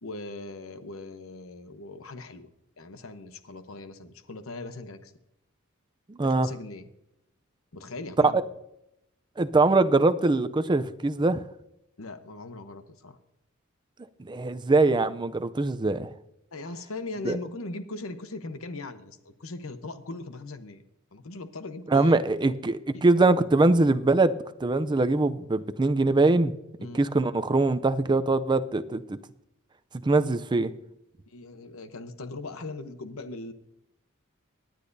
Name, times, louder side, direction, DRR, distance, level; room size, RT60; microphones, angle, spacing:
voice 1, 0.0-2.5 2.8-5.1 6.2-6.9 7.7-8.4 12.0-13.2 16.5-20.8 21.1-22.2 22.9-23.0 26.8-27.0 31.3-33.5, left 2 dB, 70° left, 10 dB, 0.9 m, -39 dB
voice 2, 6.1-6.5 8.2-8.3 9.4-11.4 14.2-16.1 17.2-17.4 21.9-24.3 24.6-26.5 26.9-29.2 30.0-30.7, right 3 dB, 20° right, 12 dB, 0.5 m, -22 dB
18.0 x 10.5 x 2.7 m, 0.84 s
head